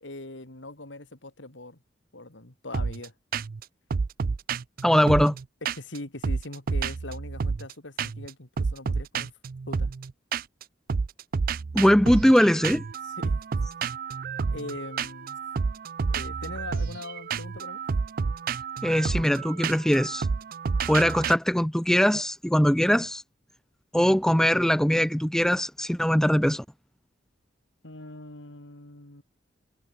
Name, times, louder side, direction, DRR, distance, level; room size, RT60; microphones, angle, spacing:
voice 1, 0.0-1.8 2.1-3.1 5.0-5.1 5.7-9.3 9.7-9.9 13.0-13.4 14.5-15.4 16.1-17.8 27.8-29.2, left 2 dB, 75° left, 3.1 m, -41 dB
sound 1, 2.7-3.1 3.3-3.6 3.9-6.0 6.2-7.7 8.0-8.3 8.6-10.6 10.9-21.3, right 5 dB, 50° right, 0.4 m, -30 dB
voice 2, 4.8-5.3 11.7-12.8 18.8-20.3 20.9-23.2 23.9-26.6, equal, 5° left, 0.7 m, -21 dB
head